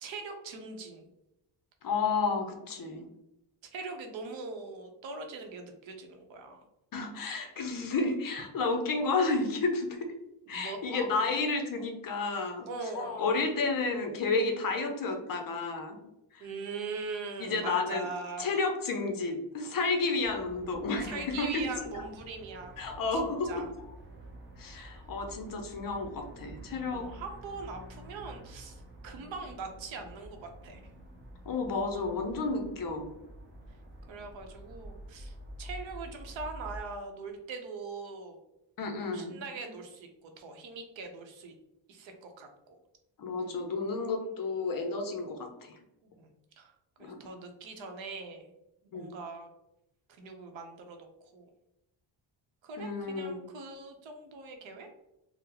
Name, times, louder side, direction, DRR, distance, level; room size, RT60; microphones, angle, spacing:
voice 1, 0.0-1.1 3.7-6.6 10.5-10.8 12.7-13.3 16.4-18.5 21.0-22.7 23.1-23.7 26.9-30.8 34.1-38.4 39.1-41.5 41.9-42.8 46.0-46.7 47.0-48.5 48.9-49.5 50.2-51.1 51.3-51.5 52.6-54.9, right 4 dB, 75° right, 5 dB, 0.7 m, -41 dB
voice 2, 1.8-3.1 6.9-10.1 10.5-12.7 12.9-16.0 16.3-16.5 17.4-18.1 18.4-21.6 21.9-22.0 22.8-23.6 24.6-27.1 31.5-33.1 38.8-39.4 43.2-45.8 47.0-47.2 48.9-49.1 52.8-53.4, left 3 dB, 50° left, 4 dB, 0.5 m, -31 dB
sound 1, 20.2-36.8, right 1 dB, 25° right, 0.4 m, -48 dB
3.7 x 2.0 x 2.8 m, 0.88 s
wide cardioid pair, 170°, 47 cm